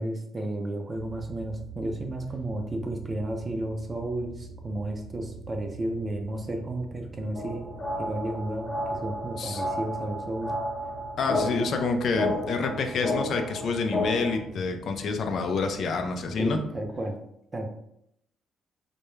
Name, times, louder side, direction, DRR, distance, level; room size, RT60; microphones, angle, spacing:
voice 1, 0.0-7.7 8.0-10.5 16.4-17.1 17.5-17.7, right 1 dB, 30° right, 4 dB, 0.4 m, -32 dB
sound 1, 0.9-17.0, right 4 dB, 70° right, 0.7 m, -45 dB
sound 2, 7.3-14.3, left 1 dB, 40° left, 0.7 m, -32 dB
voice 2, 11.2-16.6, left 4 dB, 65° left, 5 dB, 0.3 m, -28 dB
2.3 x 2.1 x 3.0 m, 0.76 s
cardioid pair, 90°, 0 cm